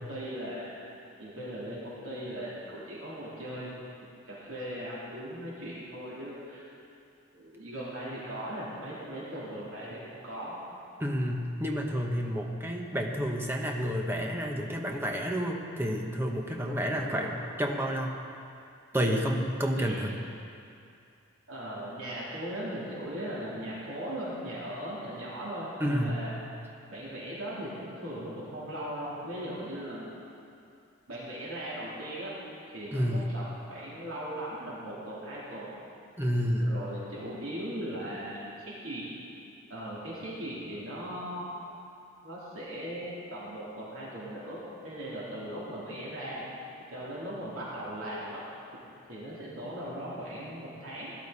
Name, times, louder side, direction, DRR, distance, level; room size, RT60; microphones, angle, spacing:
voice 1, 0.1-0.8 1.2-3.8 4.3-6.7 7.3-10.6 16.7-17.3 19.8-20.2 21.5-26.4 26.9-30.2 31.1-32.3 32.7-35.7 36.6-39.0 39.7-41.5 42.2-46.5 46.9-48.4 49.1-51.1, right 1 dB, 70° right, -8 dB, 3.5 m, -38 dB
voice 2, 11.0-18.1 18.9-20.1 25.8-26.3 32.9-33.3 36.2-36.7, equal, 10° right, 1 dB, 1.0 m, -30 dB
17.0 x 12.0 x 4.1 m, 2.5 s
head